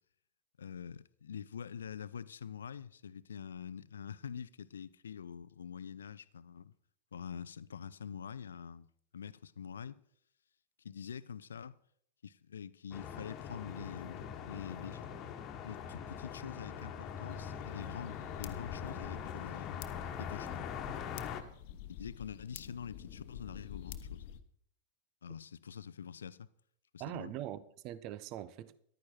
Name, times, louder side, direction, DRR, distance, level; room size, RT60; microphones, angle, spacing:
voice 1, 0.6-6.7 7.1-8.9 9.1-10.0 10.8-11.7 12.2-15.1 15.6-19.9 20.2-20.7 21.9-24.2 25.2-26.5 26.9-27.3, left 7 dB, 70° left, 0.5 m, -45 dB
sound 1, 12.9-21.4, left 8 dB, 35° left, 1.4 m, -42 dB
sound 2, 17.3-24.4, left 10 dB, 50° left, 1.0 m, -48 dB
voice 2, 27.0-28.8, right 13 dB, 40° right, 0.7 m, -42 dB
14.0 x 12.0 x 4.5 m
figure-of-eight pair, 90°, 0 cm